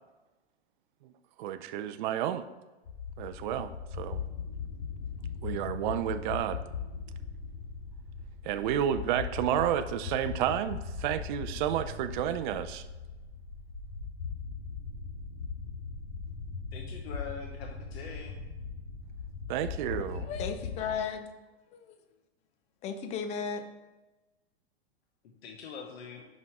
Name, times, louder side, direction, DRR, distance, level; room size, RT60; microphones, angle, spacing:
voice 1, 1.4-2.4 3.2-3.7 4.0-4.2 5.4-6.6 8.4-12.8 19.5-20.3, right 10 dB, 50° right, 0.4 m, -31 dB
sound 1, 2.9-21.0, left 5 dB, 45° left, 2.1 m, -39 dB
voice 2, 16.7-18.3 25.2-26.3, left 6 dB, 70° left, 1.1 m, -43 dB
voice 3, 20.2-21.3 21.7-22.0 22.8-23.6, left 6 dB, 20° left, 0.5 m, -34 dB
6.1 x 5.4 x 4.6 m
hypercardioid pair, 140°, 32 cm